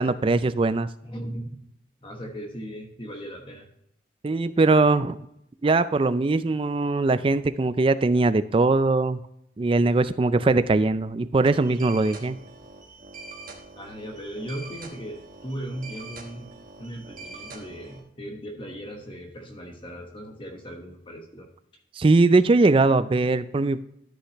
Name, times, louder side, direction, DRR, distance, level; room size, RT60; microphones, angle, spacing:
voice 1, 0.0-0.9 4.2-5.2 5.6-9.2 9.6-12.4 22.0-23.8, right 3 dB, 25° right, 14 dB, 0.3 m, -21 dB
voice 2, 1.0-1.6 2.0-3.7 13.7-21.5 22.1-22.2, equal, 25° left, 3 dB, 1.2 m, -38 dB
sound 1, 11.5-18.0, right 3 dB, 45° right, 1.2 m, -44 dB
13.0 x 5.7 x 3.0 m, 0.78 s
head